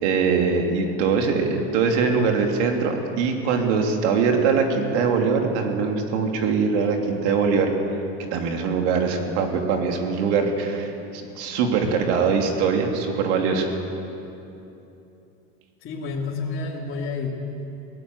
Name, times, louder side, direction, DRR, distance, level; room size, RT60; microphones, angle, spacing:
voice 1, 0.0-7.7 8.3-13.8, right 5 dB, 80° right, 3 dB, 3.1 m, -22 dB
voice 2, 15.8-17.3, left 4 dB, 35° left, -3 dB, 3.1 m, -29 dB
22.5 x 18.0 x 7.9 m, 2.9 s
supercardioid pair, 125°, 34 cm